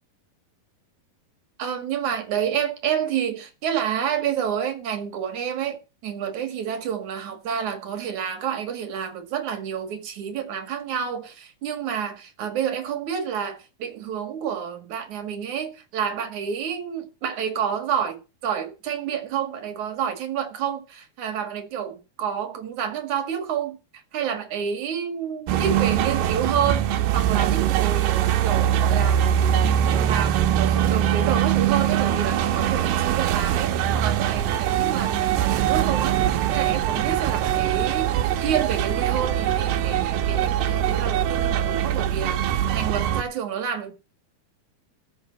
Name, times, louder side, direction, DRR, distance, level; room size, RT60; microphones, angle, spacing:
voice 1, 1.6-23.8 24.1-29.2 29.6-43.9, right 8 dB, 55° right, 3.2 m, -29 dB
sound 1, 25.5-43.2, right 10 dB, 90° right, 3.0 m, -22 dB
13.5 x 6.6 x 7.6 m
omnidirectional pair, 4.5 m